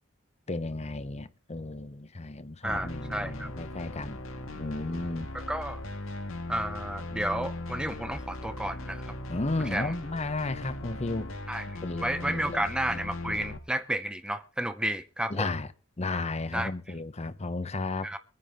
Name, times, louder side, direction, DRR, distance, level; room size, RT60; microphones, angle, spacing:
voice 1, 0.5-4.2 4.6-5.3 9.3-11.3 11.8-12.6 15.3-15.7 16.0-18.1, left 2 dB, 35° left, 0.9 m, -33 dB
voice 2, 2.6-3.5 5.3-5.8 6.5-9.1 9.6-9.9 11.5-11.7 12.0-15.5 16.5-16.7 18.0-18.2, right 1 dB, 5° right, 0.6 m, -32 dB
sound 1, 2.7-13.6, left 2 dB, 85° left, 1.8 m, -39 dB
23.0 x 9.8 x 3.7 m
head